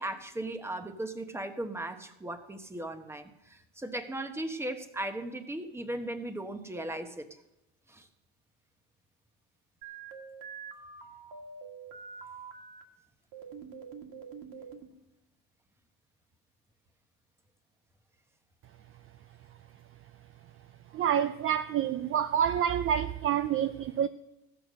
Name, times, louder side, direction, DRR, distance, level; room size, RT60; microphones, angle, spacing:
voice 1, 0.0-7.4 7.9-8.1, right 1 dB, 5° right, 1.1 m, -37 dB
sound 1, 9.8-12.8 13.3-14.9, right 5 dB, 65° right, 2.0 m, -45 dB
voice 2, 20.9-24.1, right 9 dB, 35° right, 0.5 m, -28 dB
15.0 x 6.7 x 6.4 m
supercardioid pair, 105°, 38 cm